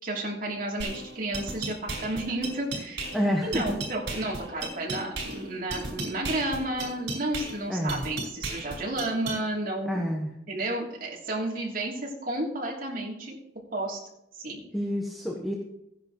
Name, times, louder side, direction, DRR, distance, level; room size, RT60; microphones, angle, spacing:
voice 1, 0.0-3.0 3.4-10.0 10.5-13.4 13.7-14.0 14.4-14.6, right 1 dB, 50° right, -3 dB, 3.1 m, -32 dB
sound 1, 0.8-9.4, right 2 dB, 80° right, 5.2 m, -36 dB
voice 2, 3.1-3.8 7.7-8.0 9.8-10.3 14.7-15.5, equal, ahead, -2 dB, 1.2 m, -28 dB
15.5 x 10.5 x 3.1 m, 0.82 s
head